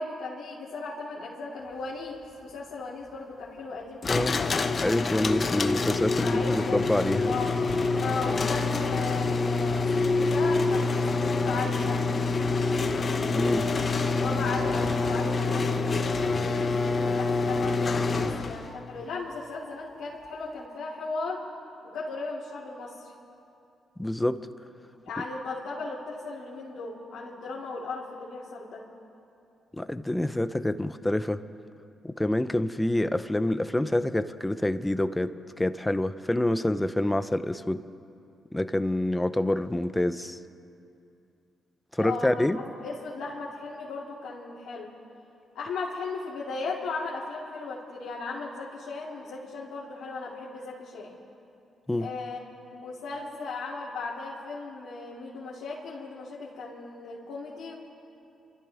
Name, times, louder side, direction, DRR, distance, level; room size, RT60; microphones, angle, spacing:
voice 1, 0.0-4.5 6.2-7.6 8.0-12.0 14.2-21.4 21.8-23.1 25.0-28.8 42.0-44.9 45.5-51.1 52.0-52.4 52.7-57.7, left 3 dB, 80° left, -9 dB, 2.6 m, -36 dB
sound 1, 4.0-18.7, left 3 dB, 45° left, 0.9 m, -26 dB
voice 2, 4.1-4.4 4.8-7.3 13.3-13.7 24.0-24.4 29.7-31.4 32.0-35.3 35.6-37.8 38.5-40.4 41.9-42.6 51.9-52.1, left 1 dB, 15° left, 12 dB, 0.8 m, -27 dB
27.5 x 13.5 x 3.6 m, 2.6 s
supercardioid pair, 55°, 0 cm